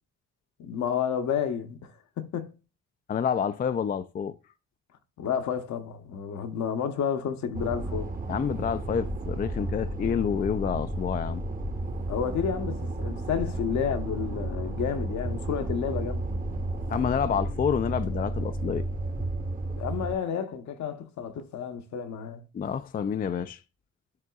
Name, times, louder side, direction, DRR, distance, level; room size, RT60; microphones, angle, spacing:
voice 1, 0.6-1.9 2.2-2.5 5.2-8.1 12.1-16.3 19.8-22.4, left 7 dB, 65° left, 0.9 m, -31 dB
voice 2, 3.1-4.3 8.3-11.4 16.9-18.8 22.5-23.6, left 7 dB, 30° left, 0.4 m, -28 dB
sound 1, 7.5-20.2, right 1 dB, 30° right, 0.9 m, -32 dB
11.0 x 3.7 x 2.3 m
cardioid pair, 90°, 30 cm